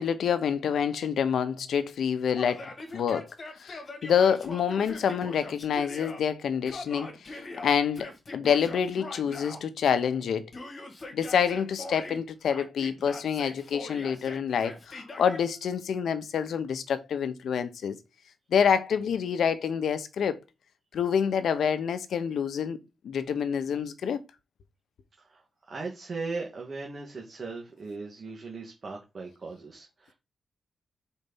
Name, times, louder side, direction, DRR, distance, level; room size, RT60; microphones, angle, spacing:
voice 1, 0.0-3.3 3.6-7.4 7.6-10.4 11.1-18.0 18.5-20.4 20.9-22.8 23.0-24.2, left 7 dB, 75° left, 0.8 m, -27 dB
Yell, 2.3-6.2 6.7-9.6 10.5-12.2 12.5-15.4, left 2 dB, 35° left, 1.9 m, -42 dB
voice 2, 25.7-30.1, right 3 dB, 40° right, 1.6 m, -38 dB
4.5 x 4.2 x 5.3 m
wide cardioid pair, 120°, 0 cm